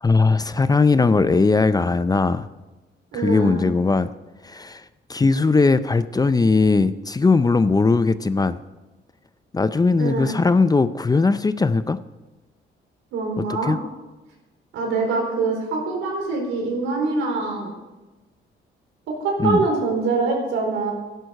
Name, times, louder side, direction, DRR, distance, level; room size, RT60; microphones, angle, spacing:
voice 1, 0.0-2.5 3.1-4.1 4.4-4.8 5.1-8.6 9.5-12.0 13.4-13.8 19.4-19.6, left 4 dB, 20° left, 13 dB, 0.5 m, -19 dB
voice 2, 3.1-3.7 10.0-10.4 13.1-13.7 14.7-17.7 19.1-20.9, right 3 dB, 85° right, 1 dB, 4.5 m, -24 dB
13.0 x 11.0 x 6.5 m, 1.1 s
cardioid pair, 90°, 20 cm